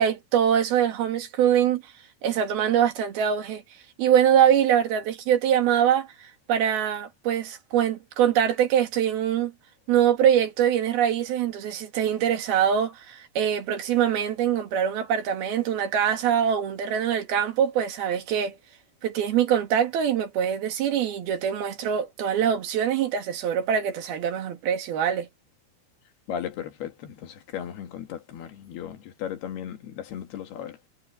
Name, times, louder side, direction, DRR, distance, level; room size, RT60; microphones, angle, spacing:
voice 1, 0.0-1.8 2.2-3.6 4.0-9.5 9.9-18.6 19.0-25.3, right 9 dB, 75° right, 3.9 m, -23 dB
voice 2, 26.3-30.8, left 9 dB, 90° left, 4.0 m, -36 dB
omnidirectional pair, 4.4 m